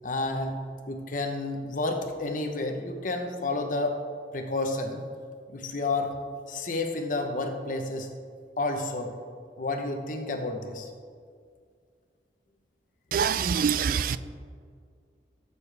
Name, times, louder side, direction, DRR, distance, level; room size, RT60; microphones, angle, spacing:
voice 1, 0.0-0.6 0.9-4.0 4.3-5.0 5.5-6.2 6.5-8.1 8.6-9.1 9.6-10.9, left 2 dB, 50° left, 0.9 m, -30 dB
voice 2, 13.1-14.2, right 7 dB, 50° right, 0.3 m, -25 dB
13.5 x 6.9 x 3.4 m
head